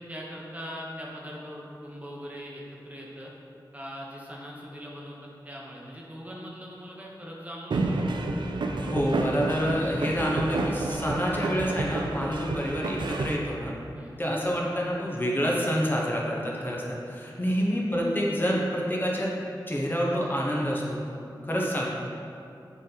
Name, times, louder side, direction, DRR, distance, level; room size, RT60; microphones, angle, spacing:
voice 1, 0.0-3.3 3.7-8.0 13.9-14.3 17.5-17.8, equal, 20° right, -3 dB, 1.0 m, -41 dB
sound 1, 7.7-13.4, right 2 dB, 75° right, 0.5 m, -30 dB
voice 2, 8.8-13.7 14.2-19.3 19.7-21.0 21.5-21.9, equal, 25° left, -4 dB, 1.1 m, -27 dB
6.2 x 4.1 x 4.0 m, 2.6 s
cardioid pair, 45°, 8 cm